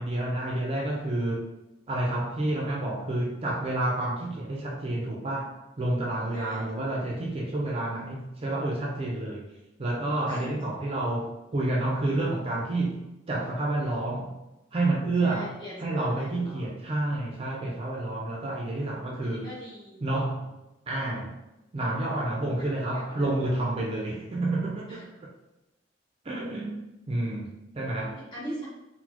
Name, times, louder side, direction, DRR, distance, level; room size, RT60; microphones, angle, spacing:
voice 1, 0.0-1.5 1.9-9.5 9.8-14.4 14.7-19.5 20.0-20.5 20.9-21.4 21.7-25.0 26.2-28.2, right 2 dB, 35° right, -2 dB, 0.5 m, -29 dB
voice 2, 6.3-6.7 10.3-10.6 15.2-16.7 19.2-20.0 22.4-23.5 24.9-25.1 28.0-28.7, equal, 30° left, -8 dB, 1.5 m, -41 dB
3.9 x 2.1 x 2.9 m, 0.96 s
head